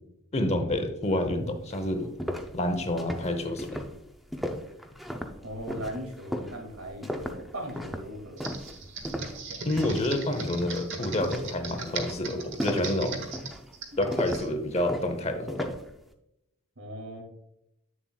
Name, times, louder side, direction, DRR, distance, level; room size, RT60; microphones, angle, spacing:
voice 1, 0.3-2.1 2.5-3.9 9.6-13.2 14.0-15.7, left 1 dB, 30° left, 7 dB, 0.8 m, -28 dB
sound 1, 1.2-1.3 1.7-10.1 10.4-10.8 11.2-15.9, equal, ahead, 0.5 m, -36 dB
voice 2, 5.4-8.5 16.8-17.2, equal, 80° right, 2 dB, 2.2 m, -38 dB
Computer keyboard, 8.4-14.5, right 4 dB, 55° right, 1.2 m, -39 dB
8.6 x 7.2 x 2.3 m, 0.82 s
head